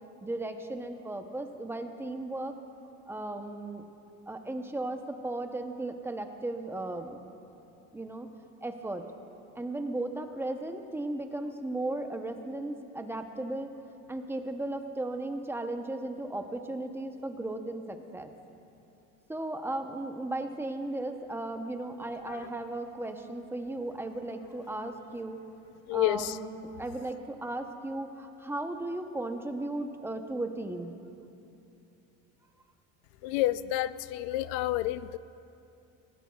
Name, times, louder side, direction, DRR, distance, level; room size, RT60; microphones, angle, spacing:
voice 1, 0.2-2.5 3.1-3.8 4.3-7.2 7.9-8.3 8.6-9.0 9.6-13.7 14.1-18.3 19.3-25.4 25.9-30.9, right 2 dB, 10° right, 6 dB, 0.7 m, -36 dB
voice 2, 25.9-26.3 33.2-35.2, left 15 dB, 75° left, 15 dB, 0.5 m, -29 dB
19.5 x 17.5 x 2.3 m, 2.7 s
cardioid pair, 125°, 31 cm